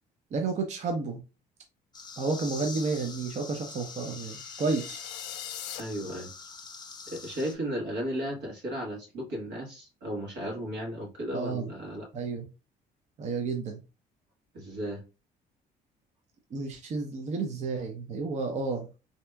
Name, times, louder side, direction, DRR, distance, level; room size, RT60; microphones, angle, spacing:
voice 1, 0.3-1.2 2.2-5.0 11.3-11.7 12.1-12.5 13.2-13.8 16.5-18.9, right 4 dB, 45° right, 3 dB, 0.6 m, -31 dB
sound 1, 1.9-7.5, left 5 dB, 25° left, 0.5 m, -44 dB
sound 2, 3.8-5.8, left 12 dB, 85° left, 0.4 m, -42 dB
voice 2, 5.8-6.3 7.1-12.1 14.5-15.0, equal, 85° right, -1 dB, 1.4 m, -35 dB
3.3 x 2.8 x 2.2 m, 0.29 s
cardioid pair, 110°, 17 cm